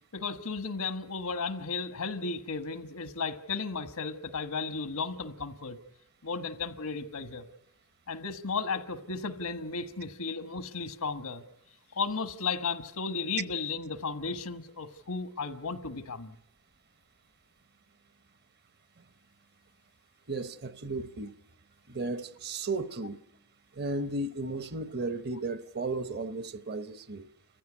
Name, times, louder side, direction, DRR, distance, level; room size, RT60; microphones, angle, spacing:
voice 1, 0.1-5.8 6.2-7.4 8.1-11.4 11.9-16.3, left 4 dB, 80° left, 1.3 m, -34 dB
voice 2, 20.3-21.3 21.9-23.2 23.7-27.3, right 2 dB, 45° right, 0.8 m, -34 dB
29.0 x 15.0 x 9.7 m
head